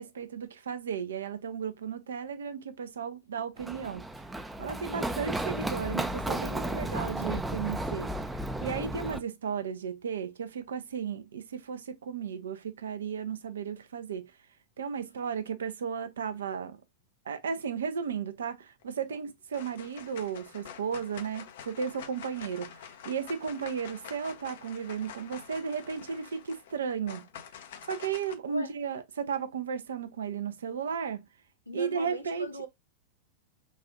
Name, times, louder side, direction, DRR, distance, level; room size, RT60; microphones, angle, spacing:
voice 1, 0.0-4.0 4.6-8.1 8.6-14.3 14.8-16.8 17.3-27.2 27.9-31.2 31.7-32.5, right 6 dB, 65° right, 0.5 m, -34 dB
Run, 3.6-9.2, right 1 dB, 5° right, 0.4 m, -33 dB
voice 2, 4.9-5.2 28.5-28.7 31.7-32.7, equal, 90° left, 0.7 m, -39 dB
sound 1, 18.8-19.2 19.5-28.3, left 8 dB, 55° left, 0.5 m, -47 dB
4.1 x 2.4 x 2.3 m
figure-of-eight pair, 90°, 0 cm